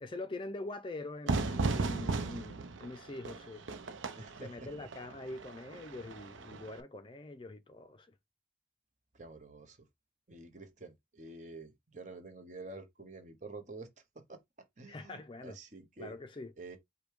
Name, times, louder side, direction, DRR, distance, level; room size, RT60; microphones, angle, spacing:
voice 1, 0.0-3.6 4.4-8.1 14.9-15.6 16.0-16.5, left 2 dB, 25° left, 0.4 m, -44 dB
Fire / Fireworks, 1.3-6.8, right 3 dB, 90° right, 0.7 m, -36 dB
voice 2, 4.2-4.7 9.1-9.9 10.3-14.4 14.8-16.2 16.6-16.8, right 3 dB, 40° right, 0.9 m, -48 dB
5.1 x 2.2 x 4.7 m
head